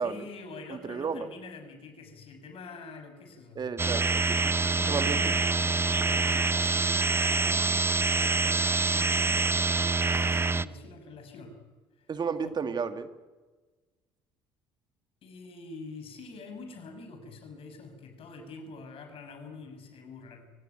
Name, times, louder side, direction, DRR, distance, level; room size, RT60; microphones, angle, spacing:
voice 1, 0.0-3.6 4.3-11.6 12.0-12.1 12.4-12.6 15.2-20.5, left 3 dB, 55° left, 8 dB, 5.9 m, -46 dB
voice 2, 0.7-1.3 3.6-4.4 4.9-5.2 12.1-13.1, right 5 dB, 40° right, 9 dB, 2.0 m, -32 dB
sound 1, 3.8-10.6, right 3 dB, 20° right, 0.8 m, -26 dB
23.5 x 18.0 x 9.2 m, 1.3 s
hypercardioid pair, 65°, 11 cm